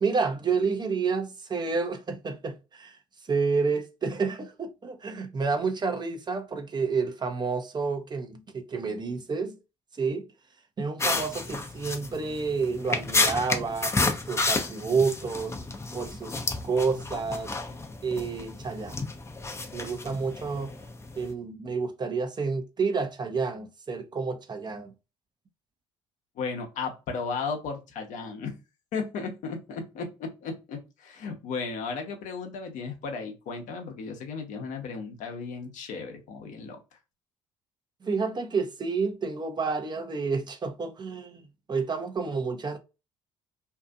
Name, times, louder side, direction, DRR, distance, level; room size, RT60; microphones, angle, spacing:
voice 1, 0.0-3.0 3.3-9.5 10.0-10.3 10.8-15.6 15.9-17.5 18.0-19.0 19.7-20.8 21.2-24.9 38.0-41.4 41.7-42.8, right 4 dB, 30° right, 0.7 m, -29 dB
sound 1, 11.0-21.3, left 3 dB, 20° left, 0.6 m, -31 dB
voice 2, 26.4-28.6 28.9-36.8, left 4 dB, 60° left, 0.8 m, -35 dB
2.7 x 2.4 x 2.3 m
hypercardioid pair, 60°, 14 cm